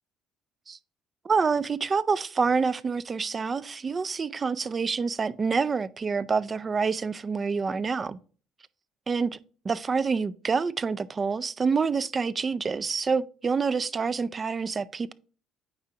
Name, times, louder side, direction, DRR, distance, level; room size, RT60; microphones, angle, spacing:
voice 1, 1.2-8.2 9.1-9.4 9.6-15.1, right 5 dB, 35° right, 0.4 m, -27 dB
8.6 x 4.7 x 2.8 m
supercardioid pair, 80°, 0 cm